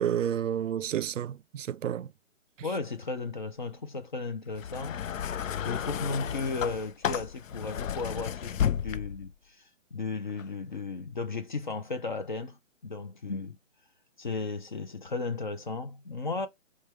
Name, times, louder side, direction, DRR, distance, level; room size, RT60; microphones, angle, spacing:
voice 1, 0.0-2.1, right 9 dB, 75° right, 0.5 m, -30 dB
voice 2, 2.6-5.3 5.6-13.6 14.2-16.5, left 3 dB, 40° left, 0.6 m, -35 dB
sound 1, 4.5-9.3 10.3-10.4, left 9 dB, 80° left, 0.6 m, -33 dB
3.2 x 2.3 x 4.2 m
hypercardioid pair, 165°, 38 cm